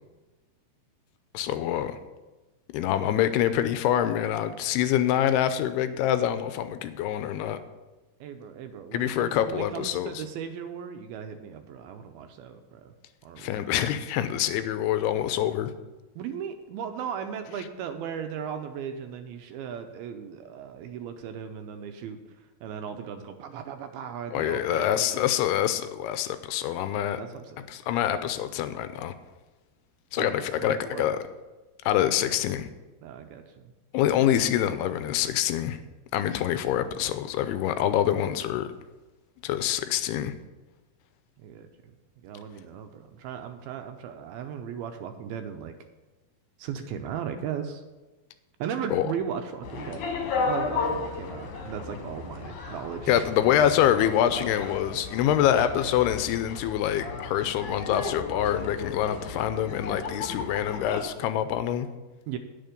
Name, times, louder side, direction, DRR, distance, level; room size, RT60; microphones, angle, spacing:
voice 1, 1.3-2.0 2.7-7.6 8.9-10.2 13.4-15.7 24.3-27.2 27.7-29.1 30.1-31.2 31.9-32.7 33.9-35.8 36.1-38.7 39.4-40.4 48.9-49.1 53.1-61.9, left 11 dB, 85° left, 11 dB, 2.5 m, -25 dB
voice 2, 8.2-12.9 13.2-13.6 16.2-22.2 22.6-25.3 27.0-27.7 30.2-31.1 33.0-33.7 41.4-41.9 42.2-45.8 46.6-47.8 48.6-50.1 50.4-53.2 62.3-62.4, right 8 dB, 80° right, 7 dB, 2.4 m, -37 dB
sound 1, 49.6-61.0, left 4 dB, 60° left, 2.3 m, -34 dB
9.3 x 8.9 x 5.2 m, 1.1 s
omnidirectional pair, 4.7 m